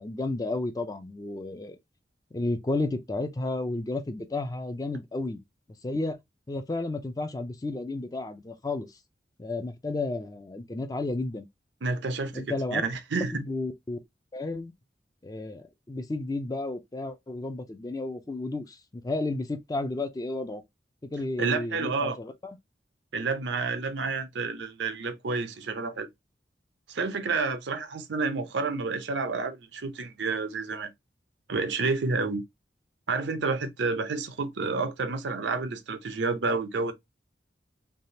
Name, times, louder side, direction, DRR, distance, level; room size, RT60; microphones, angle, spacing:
voice 1, 0.0-1.8 2.3-5.4 5.8-6.2 6.5-9.0 9.4-11.5 12.3-12.8 13.4-14.0 14.3-14.7 15.2-20.6 21.0-22.6, left 2 dB, 20° left, 0.4 m, -32 dB
voice 2, 11.8-13.4 21.4-22.2 23.1-26.1 26.9-30.9 31.5-32.4 33.1-36.9, right 4 dB, 85° right, 0.6 m, -29 dB
3.4 x 2.4 x 2.7 m
head